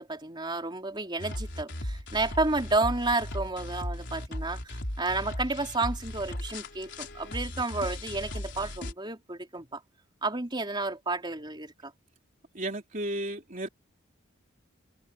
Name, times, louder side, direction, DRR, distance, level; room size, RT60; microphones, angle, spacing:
voice 1, 0.0-9.8 10.2-11.9, right 3 dB, 25° right, 3.8 m, -31 dB
sound 1, 1.2-8.9, left 1 dB, 55° left, 4.5 m, -37 dB
voice 2, 12.5-13.7, right 1 dB, 40° right, 3.4 m, -33 dB
head